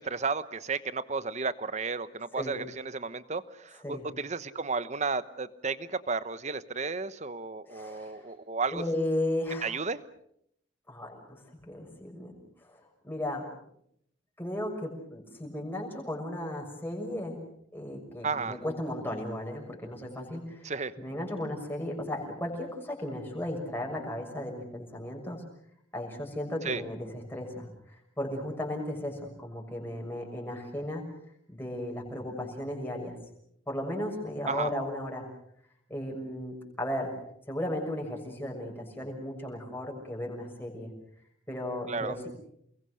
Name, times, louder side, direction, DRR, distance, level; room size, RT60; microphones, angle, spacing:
voice 1, 0.0-8.8 9.6-10.0 18.2-18.6 20.6-20.9 26.6-26.8 34.5-34.7 41.9-42.2, right 4 dB, 35° right, 14 dB, 1.0 m, -33 dB
voice 2, 7.7-8.2 8.7-9.8 10.9-12.4 12.7-13.5 14.4-17.4 17.7-20.7 21.0-25.4 25.9-27.7 28.2-31.0 31.5-33.1 33.7-35.3 35.9-37.1 37.5-40.9 41.5-42.3, left 1 dB, 10° left, 0 dB, 6.5 m, -35 dB
29.5 x 22.0 x 6.5 m, 0.71 s
head